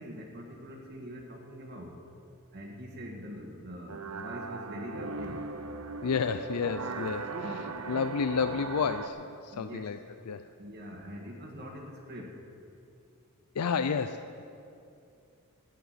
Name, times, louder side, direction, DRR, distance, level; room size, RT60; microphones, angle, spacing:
voice 1, 0.0-2.0 2.5-5.5 7.3-8.1 8.4-8.5 9.5-9.9 10.6-12.4, equal, 45° right, -1 dB, 1.6 m, -43 dB
sound 1, 3.9-9.1, right 4 dB, 75° right, 0.8 m, -38 dB
voice 2, 6.0-10.0 10.3-10.5 13.5-14.4, left 5 dB, 85° left, 10 dB, 0.5 m, -31 dB
14.0 x 8.4 x 9.5 m, 2.6 s
head